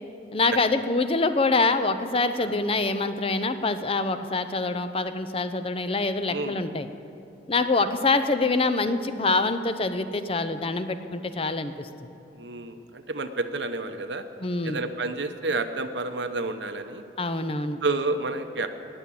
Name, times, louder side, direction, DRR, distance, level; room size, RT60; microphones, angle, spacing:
voice 1, 0.3-6.9 7.5-11.9 14.4-14.8 17.2-17.8, left 3 dB, 30° left, 10 dB, 0.6 m, -25 dB
voice 2, 6.3-6.6 12.3-14.2 14.6-17.0 17.8-18.7, right 3 dB, 85° right, 8 dB, 1.0 m, -30 dB
19.0 x 7.4 x 8.6 m, 2.6 s
head